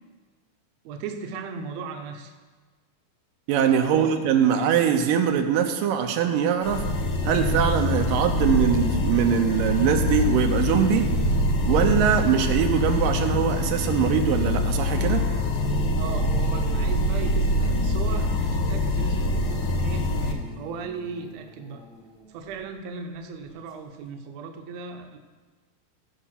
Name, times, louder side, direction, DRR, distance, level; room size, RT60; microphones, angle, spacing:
voice 1, 0.9-2.3 3.9-4.5 16.0-21.9 22.3-25.2, right 5 dB, 70° right, 5 dB, 1.7 m, -37 dB
voice 2, 3.5-6.8 7.3-11.0 11.7-15.2, right 8 dB, 90° right, 6 dB, 2.5 m, -22 dB
sound 1, 6.6-20.3, left 1 dB, 70° left, 1.3 m, -25 dB
sound 2, 7.3-20.4, left 5 dB, 85° left, 3.8 m, -41 dB
sound 3, 9.6-22.9 23.5-23.8 24.0-24.1, right 1 dB, 15° left, 1.2 m, -41 dB
14.5 x 5.6 x 5.9 m, 1.4 s
omnidirectional pair, 3.8 m